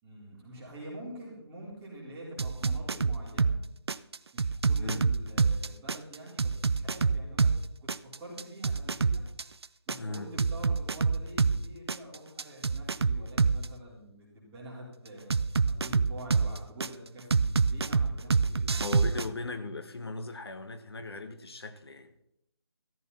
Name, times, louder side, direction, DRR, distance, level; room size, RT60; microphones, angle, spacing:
voice 1, 0.0-3.6 4.3-7.6 7.9-9.2 9.9-15.3 15.6-18.6, right 1 dB, 10° right, 3.9 m, -46 dB
sound 1, 2.4-3.6 3.9-7.6 7.9-11.6 11.9-13.7 15.3-16.9 17.3-19.3, right 4 dB, 70° right, 0.6 m, -26 dB
voice 2, 10.0-10.3 18.7-22.1, left 3 dB, 65° left, 1.8 m, -38 dB
14.5 x 14.0 x 4.2 m
figure-of-eight pair, 160°, 14 cm